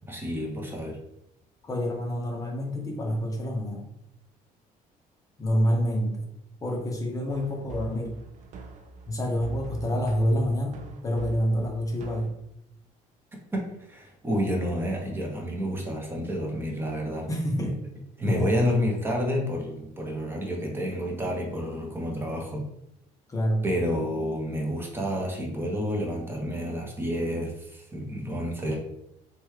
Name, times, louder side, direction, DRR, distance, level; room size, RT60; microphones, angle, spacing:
voice 1, 0.1-1.0 13.9-17.3 17.6-17.7 18.2-22.7 23.6-28.8, equal, 15° right, 0 dB, 0.7 m, -29 dB
voice 2, 1.6-3.9 5.4-6.3 6.6-8.2 9.1-10.8 11.0-12.3 17.3-17.8 18.2-18.5 23.3-23.6, equal, 20° left, 1 dB, 0.7 m, -27 dB
sound 1, 7.3-12.3, right 3 dB, 55° right, 0.4 m, -43 dB
3.0 x 2.2 x 3.2 m, 0.80 s
cardioid pair, 125°, 15 cm